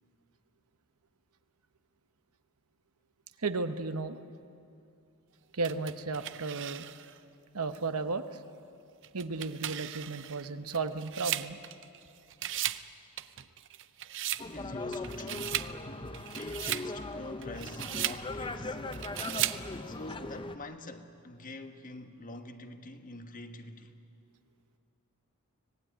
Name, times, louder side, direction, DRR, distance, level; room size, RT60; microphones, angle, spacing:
voice 1, 3.4-4.2 5.5-6.9 7.5-8.4 9.1-11.6, right 3 dB, 75° right, 1.0 m, -34 dB
sound 1, 5.6-7.2 7.7-7.8 9.0-12.0 12.3-12.9 13.2-14.5 14.9-15.7 16.1-16.9 17.4-18.2 18.9-19.6, right 13 dB, 55° right, 0.6 m, -36 dB
voice 2, 14.4-15.6 16.3-18.8 19.8-23.9, left 2 dB, 40° left, 1.3 m, -45 dB
sound 2, 14.4-20.6, left 2 dB, 20° left, 0.7 m, -39 dB
25.0 x 18.5 x 9.2 m
head